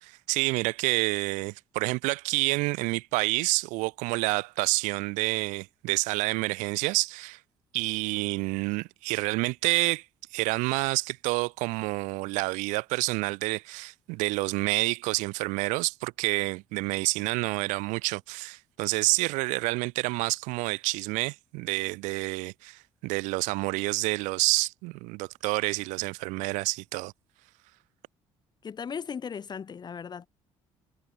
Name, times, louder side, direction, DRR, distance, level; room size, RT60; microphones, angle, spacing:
voice 1, 0.0-7.4 7.7-10.0 10.3-27.1, right 25 dB, 85° right, 0.5 m, -28 dB
voice 2, 28.6-30.3, left 6 dB, 35° left, 0.5 m, -37 dB
supercardioid pair, 65°, 12 cm